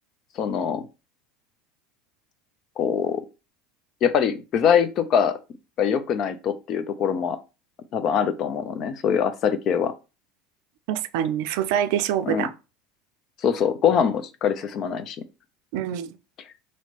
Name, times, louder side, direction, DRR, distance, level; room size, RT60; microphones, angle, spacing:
voice 1, 0.4-0.8 2.8-3.2 4.0-5.3 5.8-7.4 7.9-9.9 12.2-12.5 13.4-15.2, left 7 dB, 50° left, 0.6 m, -23 dB
voice 2, 10.9-12.5 15.7-16.1, right 10 dB, 65° right, 0.4 m, -25 dB
3.1 x 2.9 x 4.3 m
hypercardioid pair, 80°, 0 cm